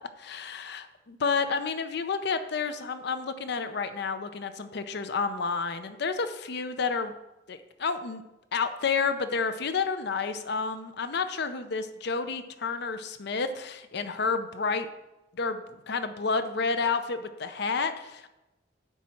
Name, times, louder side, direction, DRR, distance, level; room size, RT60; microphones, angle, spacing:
voice 1, 0.0-7.1 7.5-8.2 8.5-14.9 15.3-18.3, left 5 dB, 60° left, 10 dB, 0.6 m, -30 dB
10.0 x 4.2 x 7.6 m, 0.97 s
head